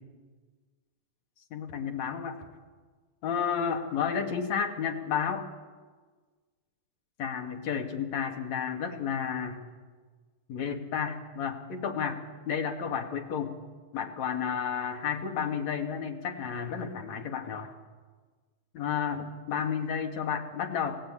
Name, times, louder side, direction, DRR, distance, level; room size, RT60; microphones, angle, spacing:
voice 1, 1.5-2.4 3.2-5.5 7.2-9.6 10.5-12.2 12.5-13.5 13.9-17.7 18.7-21.0, left 7 dB, 70° left, 4 dB, 3.3 m, -31 dB
28.5 x 18.0 x 8.9 m, 1.4 s
omnidirectional pair, 3.4 m